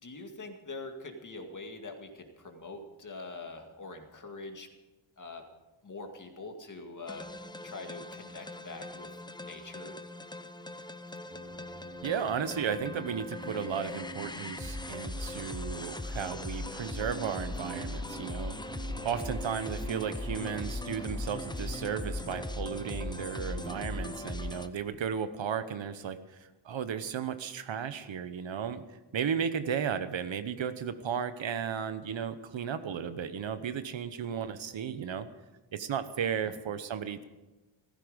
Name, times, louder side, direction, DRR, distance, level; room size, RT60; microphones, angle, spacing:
voice 1, 0.0-4.7 5.2-5.4 5.8-7.3 7.6-9.1 9.4-10.0 36.4-36.6, left 3 dB, 40° left, 4 dB, 2.1 m, -44 dB
sound 1, 7.1-24.7, left 2 dB, 10° left, 0.6 m, -39 dB
sound 2, 11.3-24.1, right 4 dB, 50° right, 3.0 m, -47 dB
voice 2, 12.0-26.4 26.6-28.8 29.1-35.3 35.7-37.2, right 7 dB, 70° right, 11 dB, 1.1 m, -34 dB
16.0 x 14.5 x 5.2 m, 1.1 s
wide cardioid pair, 130°, 48 cm